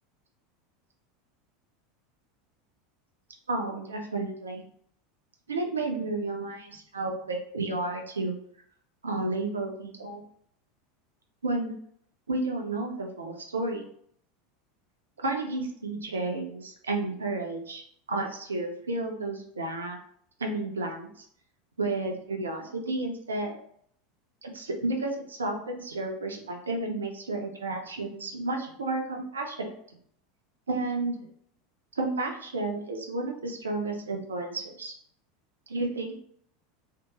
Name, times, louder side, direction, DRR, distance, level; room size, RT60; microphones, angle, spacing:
voice 1, 3.5-4.6 5.5-8.3 9.0-10.2 11.4-11.7 12.3-13.9 15.2-17.8 18.1-20.0 20.4-21.3 21.8-23.6 24.4-29.7 30.7-31.2 32.0-34.9 35.7-36.2, right 2 dB, 75° right, 2 dB, 0.4 m, -32 dB
2.8 x 2.0 x 2.8 m, 0.65 s
figure-of-eight pair, 80°, 0 cm